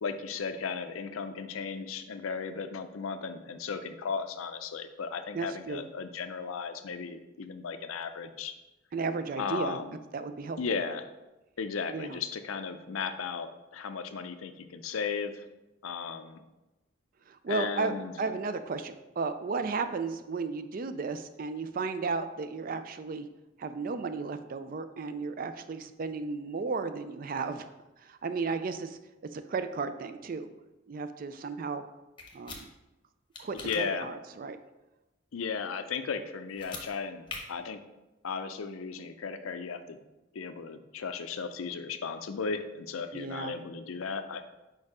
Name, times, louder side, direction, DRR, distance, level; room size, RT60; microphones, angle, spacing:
voice 1, 0.0-8.5 9.4-9.9 10.6-11.1 11.6-15.4 15.8-16.4 17.5-18.1 33.6-34.1 35.3-37.8 38.2-40.0 40.3-44.4, left 5 dB, 90° left, 9 dB, 0.5 m, -35 dB
voice 2, 5.3-5.9 8.9-9.8 10.1-10.8 11.9-12.2 17.3-23.3 23.6-27.7 28.0-29.0 29.3-30.5 30.9-31.8 32.3-32.7 33.4-34.6 43.1-43.5, right 4 dB, 45° right, 10 dB, 0.4 m, -34 dB
sound 1, 32.2-32.6 33.3-33.8 36.5-36.9 37.3-37.4, left 4 dB, 25° left, 0.9 m, -41 dB
4.7 x 4.5 x 4.8 m, 1.0 s
head